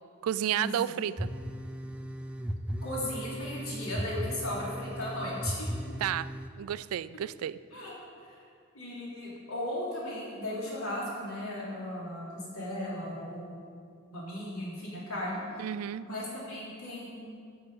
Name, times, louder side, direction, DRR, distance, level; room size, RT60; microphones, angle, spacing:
voice 1, 0.2-1.3 6.0-6.3 6.6-7.6 15.6-16.1, right 10 dB, 80° right, 16 dB, 0.3 m, -31 dB
sound 1, 1.2-6.5, equal, 5° right, 0.4 m, -36 dB
voice 2, 2.8-5.7 7.7-7.9 8.2-8.4 8.7-13.6 14.1-15.4 16.0-17.4, left 1 dB, 80° left, -6 dB, 3.2 m, -36 dB
9.7 x 6.4 x 7.9 m, 2.2 s
head